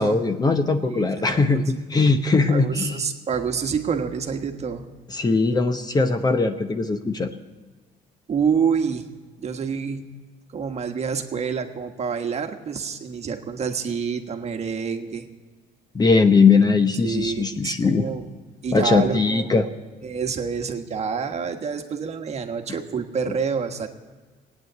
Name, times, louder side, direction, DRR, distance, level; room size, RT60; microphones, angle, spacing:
voice 1, 0.0-3.0 5.1-7.3 15.9-18.1 18.7-19.7, left 4 dB, 25° left, 8 dB, 0.9 m, -20 dB
voice 2, 0.8-1.6 2.5-4.9 8.3-9.0 9.4-10.1 10.5-15.2 17.0-18.3 18.6-19.5 20.0-23.9, right 6 dB, 40° right, 5 dB, 1.4 m, -27 dB
18.0 x 9.4 x 8.0 m, 1.4 s
cardioid pair, 110°, 17 cm